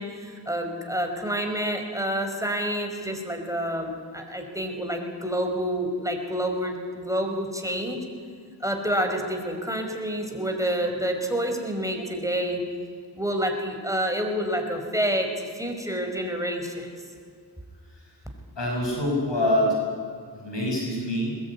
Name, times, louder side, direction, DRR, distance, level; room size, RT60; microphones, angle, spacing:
voice 1, 0.0-8.0 8.6-12.6 13.2-16.9, equal, 5° right, 3 dB, 5.3 m, -28 dB
voice 2, 18.6-19.8 20.3-21.3, left 1 dB, 85° left, -1 dB, 6.3 m, -25 dB
21.5 x 21.5 x 9.7 m, 2.2 s
wide cardioid pair, 50°, 42 cm